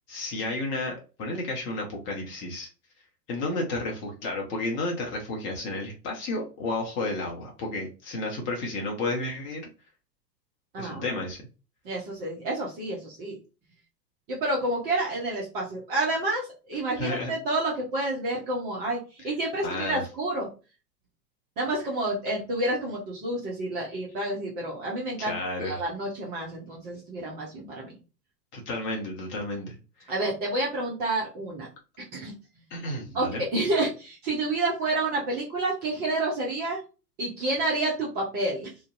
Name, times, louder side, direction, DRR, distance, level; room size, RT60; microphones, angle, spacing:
voice 1, 0.1-2.7 3.3-9.7 10.8-11.4 17.0-17.3 19.6-20.0 25.2-25.8 28.5-29.7 32.7-33.4, left 2 dB, 25° left, 0 dB, 0.7 m, -32 dB
voice 2, 11.8-13.4 14.3-19.0 19.2-20.5 21.6-25.4 25.6-27.9 30.1-31.7 32.1-32.3 33.1-36.8 37.2-38.7, right 2 dB, 20° right, -4 dB, 0.5 m, -29 dB
2.5 x 2.1 x 2.4 m, 0.33 s
figure-of-eight pair, 105°, 49 cm